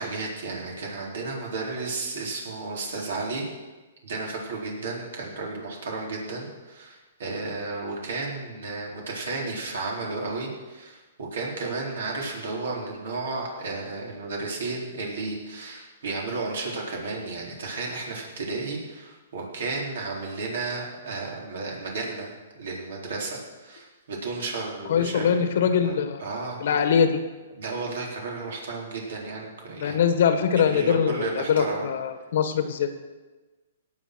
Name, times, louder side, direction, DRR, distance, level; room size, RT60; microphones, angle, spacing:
voice 1, 0.0-3.4 4.0-25.5 25.8-25.9 26.2-26.8 27.6-30.0 30.6-31.9, right 3 dB, 75° right, -2 dB, 4.0 m, -33 dB
voice 2, 24.9-27.2 29.8-33.0, left 7 dB, 60° left, 9 dB, 1.4 m, -23 dB
17.5 x 6.0 x 6.2 m, 1.2 s
hypercardioid pair, 140°, 0 cm